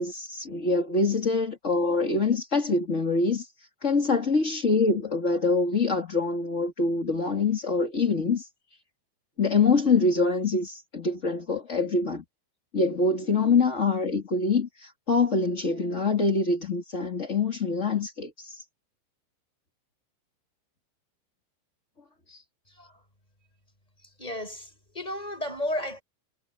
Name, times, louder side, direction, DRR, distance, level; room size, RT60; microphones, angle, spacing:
voice 1, 0.0-3.5 3.8-8.5 9.4-12.2 12.7-18.6 22.3-22.4, left 3 dB, 25° left, 1.8 m, -25 dB
voice 2, 24.2-24.7 24.9-26.0, left 1 dB, 10° left, 6.3 m, -32 dB
omnidirectional pair, 5.2 m